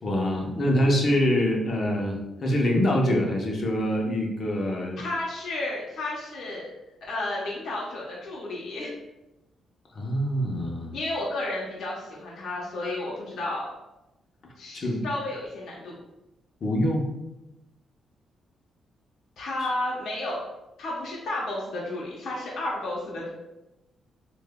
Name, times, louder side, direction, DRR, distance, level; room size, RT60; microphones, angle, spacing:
voice 1, 0.0-5.0 9.9-10.9 14.7-15.1 16.6-17.1 19.6-19.7, equal, 45° left, 0 dB, 0.9 m, -25 dB
voice 2, 5.0-6.7 7.1-8.9 10.9-13.7 14.6-15.9 19.4-20.4 20.8-23.3, left 2 dB, 70° left, -5 dB, 1.0 m, -32 dB
6.6 x 2.6 x 2.2 m, 0.96 s
cardioid pair, 130°, 0 cm